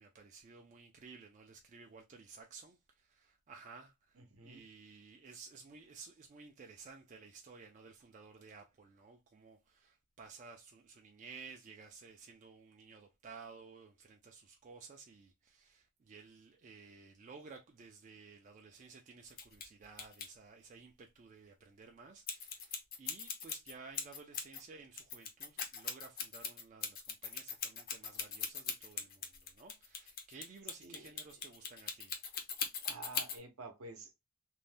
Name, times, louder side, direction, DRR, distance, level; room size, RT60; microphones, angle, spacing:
voice 1, 0.0-32.2, right 4 dB, 35° right, 0.4 m, -55 dB
sound 1, 19.3-19.7 20.0-20.3 22.3-24.6 24.9-33.4, left 6 dB, 45° left, 0.6 m, -40 dB
voice 2, 32.8-34.1, right 2 dB, 70° right, 0.7 m, -49 dB
2.6 x 2.1 x 3.2 m
head